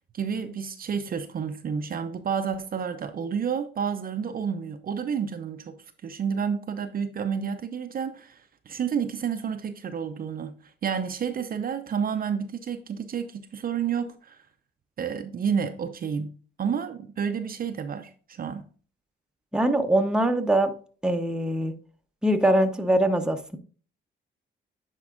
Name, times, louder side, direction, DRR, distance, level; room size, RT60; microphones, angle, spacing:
voice 1, 0.1-5.8 6.0-8.4 8.7-10.6 10.8-14.4 15.0-16.3 16.6-18.7, right 7 dB, 45° right, 0.6 m, -30 dB
voice 2, 19.5-20.7 21.0-21.7 22.2-23.6, right 1 dB, 5° right, 0.8 m, -23 dB
9.7 x 4.6 x 2.5 m
cardioid pair, 90°, 20 cm